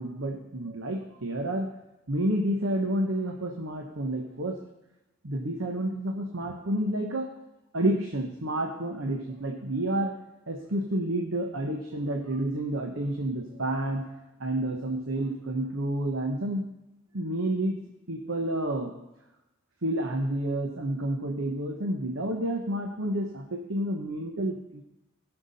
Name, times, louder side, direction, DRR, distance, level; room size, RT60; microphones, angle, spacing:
voice 1, 0.0-1.7 2.1-4.6 5.2-7.3 7.7-10.1 10.5-14.1 14.4-16.7 17.1-17.8 18.1-18.9 19.8-24.8, right 1 dB, 80° right, 2 dB, 1.0 m, -29 dB
17.5 x 5.9 x 4.1 m, 0.93 s
head